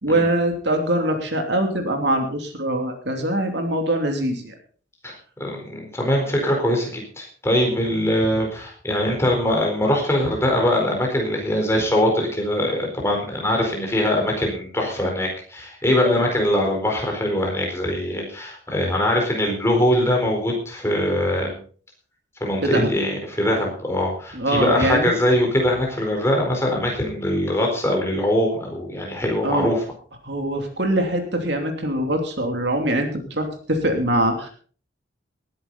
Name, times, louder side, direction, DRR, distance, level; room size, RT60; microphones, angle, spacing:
voice 1, 0.0-4.5 22.6-22.9 24.3-25.1 29.4-29.7 30.2-34.5, right 1 dB, 60° right, 4 dB, 2.9 m, -23 dB
voice 2, 5.4-21.6 22.4-29.8, left 1 dB, 15° left, 0 dB, 4.3 m, -22 dB
19.5 x 10.5 x 4.1 m, 0.43 s
head